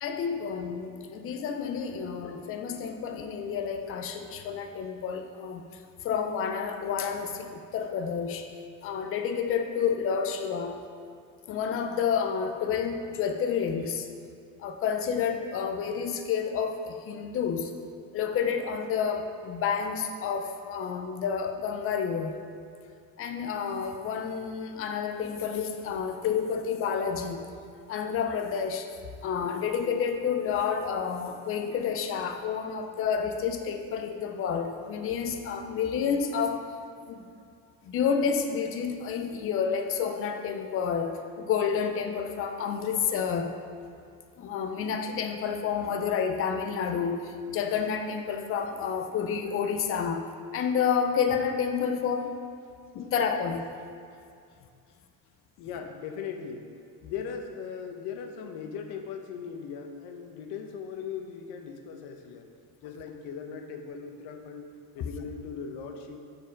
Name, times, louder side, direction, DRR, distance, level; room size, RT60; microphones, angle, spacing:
voice 1, 0.0-5.6 6.0-8.5 8.8-10.8 11.5-14.1 14.6-17.7 18.1-22.4 23.2-27.5 27.9-28.9 29.2-36.6 37.0-37.2 37.8-43.5 44.4-50.2 50.5-52.4 52.9-53.6, left 6 dB, 35° left, 6 dB, 0.4 m, -29 dB
voice 2, 55.6-56.7 57.0-62.5 62.8-64.7 64.9-66.2, left 6 dB, 85° left, 5 dB, 0.9 m, -39 dB
7.3 x 4.5 x 5.0 m, 2.4 s
cardioid pair, 175°, 39 cm